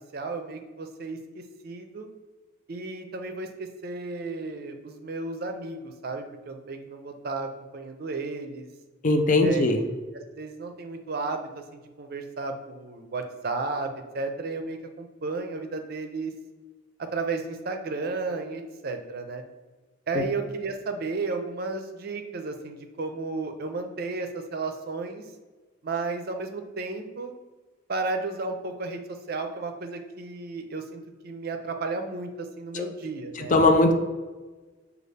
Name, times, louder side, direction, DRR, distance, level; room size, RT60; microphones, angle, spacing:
voice 1, 0.1-2.1 2.7-8.7 9.4-9.8 10.1-13.9 14.1-16.3 17.0-19.4 20.1-25.2 25.8-27.3 27.9-29.0 29.3-33.6, right 3 dB, 55° right, 6 dB, 0.5 m, -33 dB
voice 2, 9.0-9.8 20.1-20.2 32.7-32.8 33.4-33.9, left 2 dB, 45° left, 5 dB, 0.5 m, -20 dB
6.6 x 2.4 x 3.3 m, 1.3 s
head